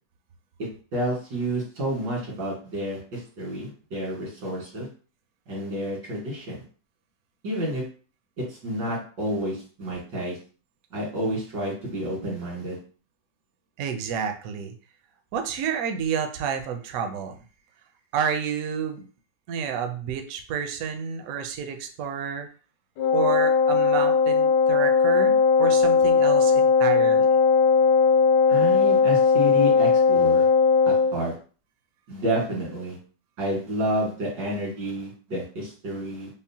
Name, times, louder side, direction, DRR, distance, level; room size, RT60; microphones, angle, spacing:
voice 1, 0.6-4.9 5.5-6.6 7.4-7.8 8.4-10.4 10.9-12.8 28.5-30.5 30.9-31.3 32.1-33.0 33.4-36.3, equal, 90° right, -4 dB, 2.3 m, -30 dB
voice 2, 13.8-14.7 15.3-17.4 18.1-19.1 19.5-22.5 23.1-27.3, right 7 dB, 70° right, 6 dB, 0.9 m, -30 dB
Wind instrument woodwind instrument, 23.0-31.2, left 5 dB, 75° left, 1.2 m, -19 dB
5.3 x 2.0 x 2.7 m, 0.39 s
omnidirectional pair, 1.9 m